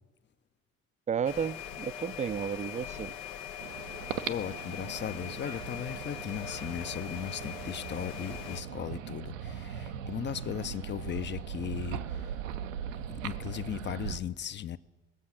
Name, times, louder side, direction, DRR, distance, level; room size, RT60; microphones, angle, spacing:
voice 1, 1.1-3.2, right 7 dB, 20° right, 0.4 m, -32 dB
sound 1, 1.2-8.6, left 9 dB, 80° left, 1.1 m, -42 dB
sound 2, 3.6-14.2, right 8 dB, 85° right, 0.7 m, -39 dB
voice 2, 4.1-12.3 13.2-14.8, left 9 dB, 30° left, 0.6 m, -37 dB
20.0 x 7.4 x 5.8 m
hypercardioid pair, 60°, 38 cm